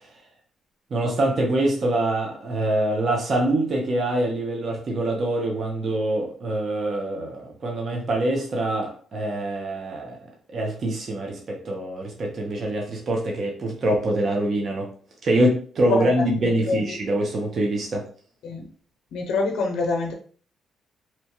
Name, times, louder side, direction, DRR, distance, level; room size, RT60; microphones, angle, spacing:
voice 1, 0.9-10.2 10.5-14.9 15.2-18.0, right 1 dB, 50° right, 0.7 m, -24 dB
voice 2, 15.9-17.0 18.4-18.7 19.1-20.1, left 3 dB, 75° left, 0.4 m, -26 dB
2.8 x 2.2 x 2.8 m
cardioid pair, 90°, 0 cm